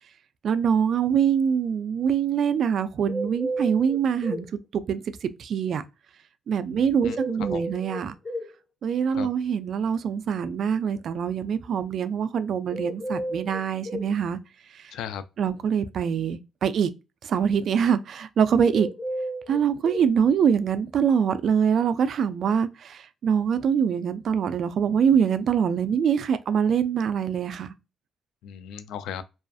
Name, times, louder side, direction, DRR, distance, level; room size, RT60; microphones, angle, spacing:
voice 1, 0.4-4.5 4.7-5.8 6.5-8.1 8.8-14.4 14.7-14.9 15.4-16.9 17.2-18.9 19.5-27.7, right 7 dB, 60° right, 0.3 m, -24 dB
sound 1, 3.1-4.5 7.1-8.5 12.7-14.1 18.7-20.1, right 1 dB, 35° left, 0.8 m, -32 dB
voice 2, 6.7-7.2 7.5-7.7 9.1-9.3 14.9-15.2 28.4-29.2, left 9 dB, 85° left, 0.3 m, -36 dB
2.4 x 2.4 x 2.3 m
cardioid pair, 90°, 0 cm